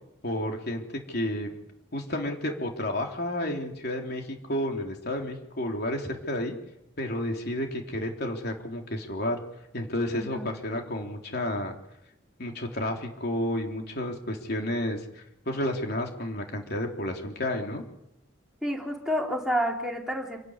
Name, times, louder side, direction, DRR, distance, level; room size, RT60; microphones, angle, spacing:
voice 1, 0.2-1.5 1.9-6.6 7.0-9.4 9.7-11.8 12.4-17.8, left 1 dB, 50° left, 2 dB, 3.7 m, -31 dB
voice 2, 10.1-10.5 18.6-20.4, equal, ahead, -1 dB, 3.8 m, -29 dB
28.5 x 12.0 x 9.9 m, 0.84 s
head